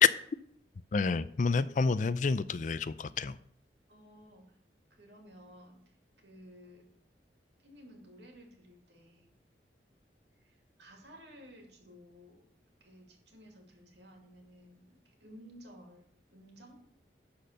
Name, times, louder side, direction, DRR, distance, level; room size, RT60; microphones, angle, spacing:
voice 1, 0.9-3.4, left 5 dB, 45° left, 15 dB, 0.4 m, -28 dB
voice 2, 3.9-4.6 4.9-6.9 7.6-9.3 10.4-12.4 12.8-16.0 16.3-16.8, equal, 75° right, 2 dB, 2.4 m, -55 dB
11.5 x 4.3 x 6.7 m, 0.67 s
head